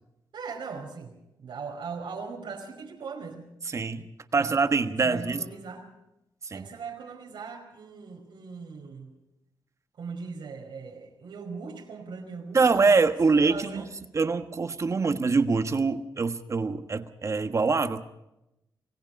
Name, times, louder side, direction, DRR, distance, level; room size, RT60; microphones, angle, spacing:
voice 1, 0.3-3.5 4.4-4.7 5.0-5.8 6.5-9.1 9.9-13.0 13.2-13.8, right 5 dB, 90° right, 1 dB, 4.9 m, -40 dB
voice 2, 3.7-5.4 6.4-6.7 12.5-13.8 14.1-18.0, right 4 dB, 40° right, 9 dB, 1.4 m, -24 dB
27.0 x 18.5 x 5.4 m, 0.88 s
wide cardioid pair, 110°, 8 cm